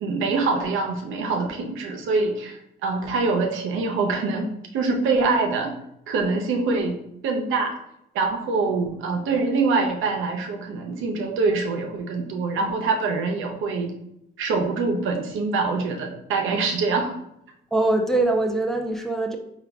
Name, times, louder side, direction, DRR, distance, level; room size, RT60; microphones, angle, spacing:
voice 1, 0.0-5.7 6.1-7.7 8.1-13.9 14.4-17.1, right 3 dB, 85° right, 2 dB, 0.7 m, -24 dB
voice 2, 17.7-19.4, right 2 dB, ahead, 3 dB, 0.5 m, -22 dB
4.6 x 2.3 x 3.4 m, 0.80 s
cardioid pair, 90°, 20 cm